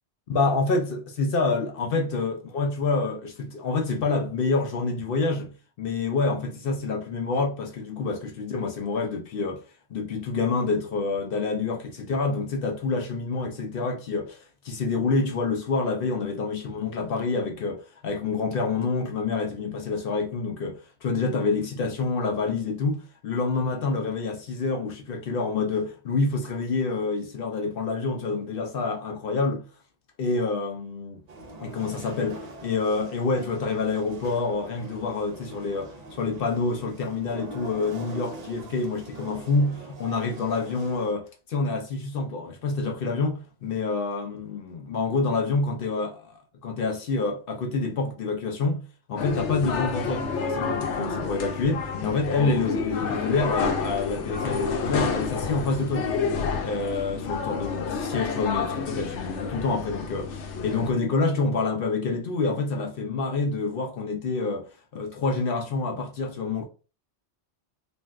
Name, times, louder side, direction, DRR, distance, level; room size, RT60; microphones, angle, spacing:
voice 1, 0.3-5.5 5.8-9.6 9.9-29.6 30.2-31.2 31.6-35.9 36.2-46.2 46.6-48.8 49.1-56.3 56.6-66.6, left 3 dB, 60° left, 0.7 m, -27 dB
sound 1, 31.3-41.1, right 1 dB, 50° right, 0.5 m, -42 dB
sound 2, 49.2-60.9, left 5 dB, 85° left, 0.9 m, -29 dB
3.2 x 2.5 x 2.4 m
omnidirectional pair, 1.2 m